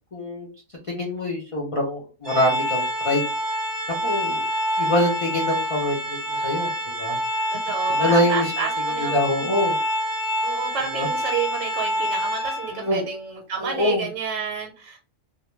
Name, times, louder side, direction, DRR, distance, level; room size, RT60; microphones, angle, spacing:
voice 1, 0.1-0.5 0.9-3.2 4.0-4.4 4.8-6.7 7.0-7.2 7.9-8.5 9.0-9.8 10.9-11.1 12.7-13.0 13.6-14.1, left 1 dB, 55° left, -3 dB, 0.3 m, -24 dB
Organ, 2.3-13.0, equal, 35° right, 0.6 m, -26 dB
voice 2, 7.5-9.2 10.4-15.0, right 6 dB, 85° right, 2 dB, 0.9 m, -30 dB
2.1 x 2.1 x 3.0 m, 0.36 s
omnidirectional pair, 1.3 m